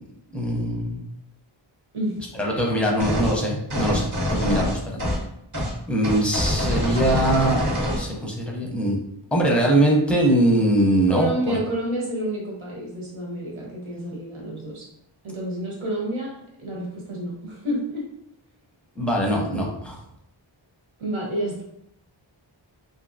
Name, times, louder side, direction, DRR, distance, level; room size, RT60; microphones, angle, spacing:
voice 1, 0.3-1.0 2.4-5.0 5.9-9.0 9.3-11.3 19.0-20.0, right 1 dB, 5° left, -2 dB, 0.6 m, -22 dB
sound 1, 3.0-3.4 3.7-5.3 5.5-5.7 6.0-8.1, equal, 40° right, 0.8 m, -25 dB
voice 2, 11.1-14.8 15.2-16.3 16.6-18.0 21.0-21.6, right 1 dB, 85° right, -3 dB, 1.1 m, -29 dB
3.1 x 2.7 x 2.6 m, 0.78 s
wide cardioid pair, 125°, 47 cm